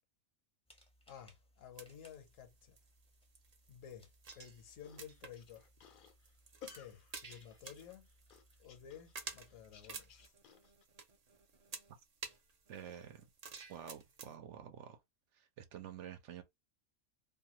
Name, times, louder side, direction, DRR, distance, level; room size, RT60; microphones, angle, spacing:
sound 1, 0.7-10.3, equal, 5° left, 0.5 m, -68 dB
voice 1, 1.1-2.8 3.7-4.1 4.3-5.7 6.6-8.1 8.6-10.3, left 9 dB, 80° left, 1.1 m, -53 dB
sound 2, 1.8-14.3, right 5 dB, 50° right, 0.4 m, -52 dB
sound 3, 4.8-10.8, left 8 dB, 60° left, 0.5 m, -58 dB
voice 2, 12.7-13.3 13.7-15.0 15.3-16.4, right 9 dB, 70° right, 0.9 m, -49 dB
2.6 x 2.2 x 2.9 m
omnidirectional pair, 1.3 m